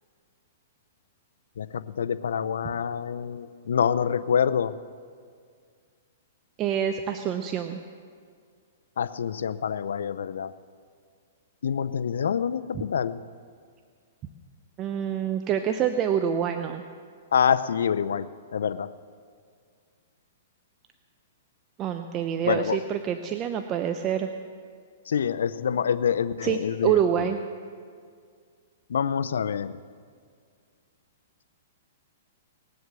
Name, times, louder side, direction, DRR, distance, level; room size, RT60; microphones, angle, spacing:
voice 1, 1.6-4.8 9.0-10.5 11.6-13.2 17.3-18.3 18.5-18.9 22.5-22.8 25.1-27.3 28.9-29.8, left 7 dB, 80° left, 13 dB, 0.6 m, -26 dB
voice 2, 6.6-7.8 14.8-16.8 21.8-24.3 26.4-27.4, right 9 dB, 30° right, 7 dB, 0.6 m, -26 dB
19.5 x 7.9 x 6.8 m, 2.1 s
hypercardioid pair, 140°, 0 cm